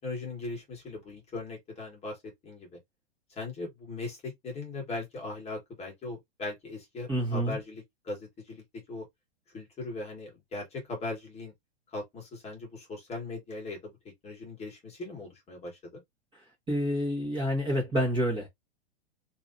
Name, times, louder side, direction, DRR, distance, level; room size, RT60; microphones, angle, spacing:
voice 1, 0.0-2.2 2.4-2.7 3.3-9.0 9.5-11.5 11.9-13.9 14.2-16.0, left 2 dB, 20° left, 1.4 m, -39 dB
voice 2, 7.1-7.6 16.7-18.5, equal, 15° right, 1.2 m, -28 dB
3.0 x 2.7 x 2.5 m
hypercardioid pair, 145°, 35 cm